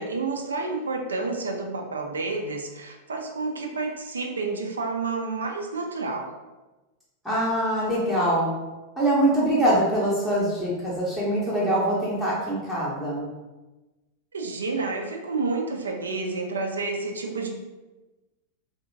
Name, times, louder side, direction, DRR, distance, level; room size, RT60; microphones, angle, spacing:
voice 1, 0.0-6.3 14.3-17.5, right 3 dB, 70° right, 3 dB, 0.3 m, -30 dB
voice 2, 7.2-8.5 9.0-13.3, right 1 dB, ahead, -9 dB, 0.6 m, -23 dB
2.6 x 2.1 x 2.5 m, 1.1 s
figure-of-eight pair, 90°, 0 cm